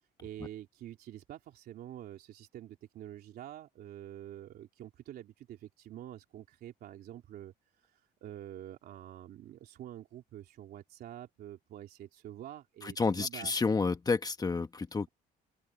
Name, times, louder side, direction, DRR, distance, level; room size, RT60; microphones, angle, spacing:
voice 1, 0.2-13.5, right 12 dB, 70° right, 3.2 m, -47 dB
voice 2, 12.8-15.1, left 4 dB, 25° left, 1.3 m, -30 dB
open air
cardioid pair, 110°, 17 cm